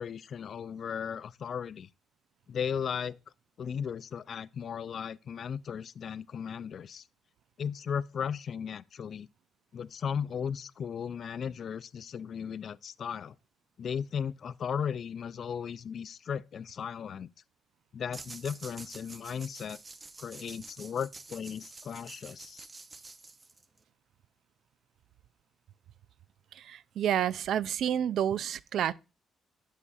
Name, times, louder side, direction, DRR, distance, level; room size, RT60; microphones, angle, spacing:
voice 1, 0.0-1.9 2.5-3.2 3.6-7.0 7.6-9.3 9.7-13.3 13.8-17.3 17.9-19.8 20.2-22.7, left 7 dB, 55° left, 0.3 m, -36 dB
sound 1, 18.1-23.8, right 3 dB, 30° right, 0.6 m, -48 dB
voice 2, 26.6-28.9, right 10 dB, 70° right, 0.3 m, -29 dB
9.7 x 6.6 x 2.4 m
cardioid pair, 90°, 0 cm